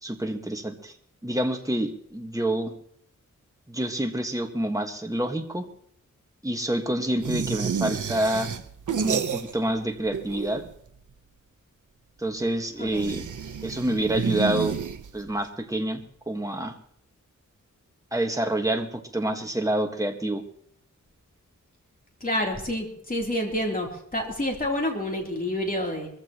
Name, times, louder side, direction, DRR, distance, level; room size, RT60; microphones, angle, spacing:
voice 1, 0.0-0.9 1.2-2.7 3.7-5.7 6.4-8.5 9.0-10.6 12.2-13.3 13.6-14.7 15.1-16.0 16.3-16.8 18.1-20.4, right 1 dB, 10° right, 4 dB, 1.5 m, -27 dB
sound 1, 7.2-9.8 10.1-10.9 12.9-15.4, right 7 dB, 75° right, 0.9 m, -30 dB
voice 2, 12.8-13.1 22.2-26.1, left 1 dB, 30° left, 1 dB, 3.2 m, -28 dB
23.5 x 15.0 x 3.0 m, 0.65 s
wide cardioid pair, 105°, 31 cm